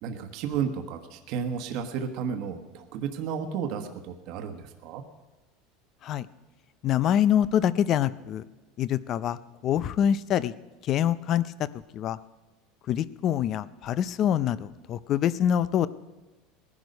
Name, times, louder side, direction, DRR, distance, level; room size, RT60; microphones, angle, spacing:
voice 1, 0.0-5.0, right 7 dB, 50° right, 6 dB, 1.2 m, -32 dB
voice 2, 6.8-8.4 8.8-10.5 10.8-11.7 11.9-12.2 12.9-15.9, left 10 dB, 35° left, 17 dB, 0.5 m, -25 dB
19.0 x 11.0 x 5.3 m, 1.2 s
supercardioid pair, 160°, 0 cm